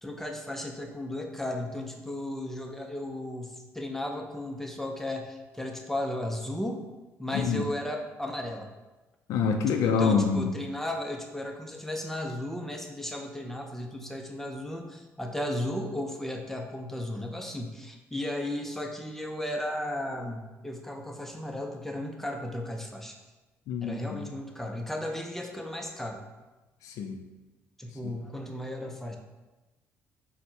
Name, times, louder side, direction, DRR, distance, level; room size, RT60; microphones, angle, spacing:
voice 1, 0.0-6.8 7.2-8.7 9.7-23.2 23.8-26.2 27.8-29.2, left 1 dB, 5° left, 2 dB, 0.4 m, -35 dB
voice 2, 7.3-7.6 9.3-10.5 23.7-24.3 26.8-27.2 28.0-28.1, left 5 dB, 80° left, 4 dB, 0.4 m, -26 dB
4.2 x 2.0 x 4.5 m, 1.1 s
cardioid pair, 115°, 6 cm